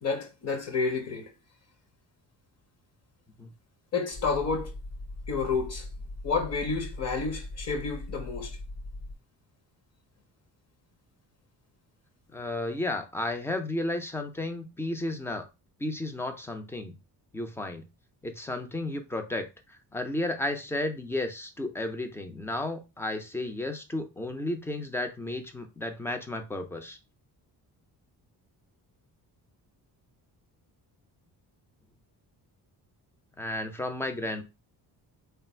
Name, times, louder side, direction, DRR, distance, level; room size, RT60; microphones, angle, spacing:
voice 1, 0.0-1.3 3.9-4.7 5.3-5.9 6.2-8.6, left 4 dB, 40° left, 0.8 m, -30 dB
sound 1, 4.1-9.1, left 2 dB, 70° left, 1.8 m, -40 dB
voice 2, 12.3-15.5 15.8-17.0 17.3-17.9 18.2-27.0 33.4-34.4, left 1 dB, 5° left, 0.3 m, -33 dB
3.3 x 2.3 x 4.2 m
cardioid pair, 175°, 39 cm